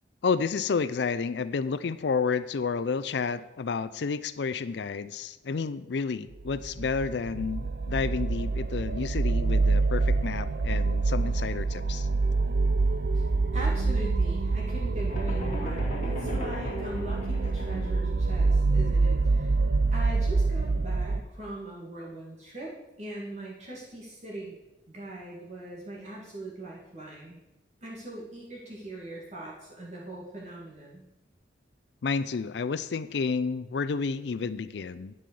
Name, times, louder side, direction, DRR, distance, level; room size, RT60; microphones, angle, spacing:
voice 1, 0.2-12.1 32.0-35.1, left 5 dB, 70° left, 13 dB, 0.4 m, -30 dB
sound 1, 6.4-21.2, right 3 dB, 60° right, 0.6 m, -26 dB
voice 2, 13.5-19.5 19.9-24.6 24.9-27.4 27.8-31.0, right 1 dB, 40° right, -4 dB, 2.2 m, -41 dB
sound 2, 15.1-18.0, left 1 dB, 45° left, 2.5 m, -38 dB
10.5 x 5.5 x 6.9 m, 0.96 s
head